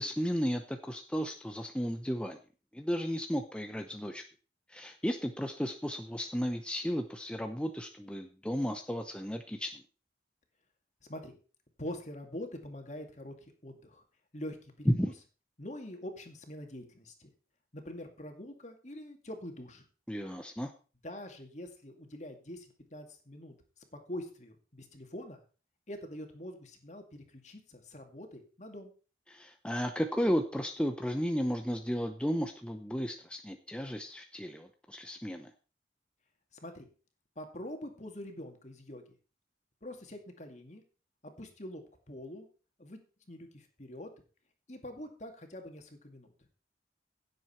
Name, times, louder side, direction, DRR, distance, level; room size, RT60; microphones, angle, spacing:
voice 1, 0.0-2.4 2.7-4.2 4.7-9.8 14.9-15.1 20.1-20.7 29.3-35.5, equal, 5° left, 5 dB, 0.7 m, -34 dB
voice 2, 11.8-14.0 14.3-15.1 15.6-17.3 17.7-19.8 21.0-25.4 25.9-28.9 36.5-36.9 37.4-39.0 39.8-40.8 41.2-42.5 42.8-43.0 43.3-44.1 44.7-46.3, left 1 dB, 40° left, 5 dB, 2.2 m, -44 dB
16.0 x 7.8 x 4.4 m, 0.36 s
head